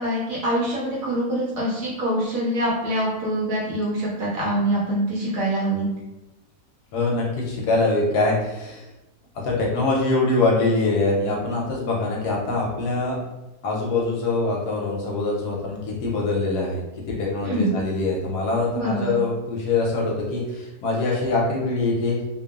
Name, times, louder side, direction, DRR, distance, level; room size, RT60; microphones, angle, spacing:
voice 1, 0.0-5.9 17.4-17.7 18.7-19.1, right 1 dB, 65° right, -6 dB, 0.9 m, -24 dB
voice 2, 6.9-8.9 9.4-13.2 13.6-22.2, left 3 dB, 70° left, -2 dB, 1.0 m, -23 dB
2.8 x 2.3 x 2.3 m, 1.0 s
omnidirectional pair, 1.9 m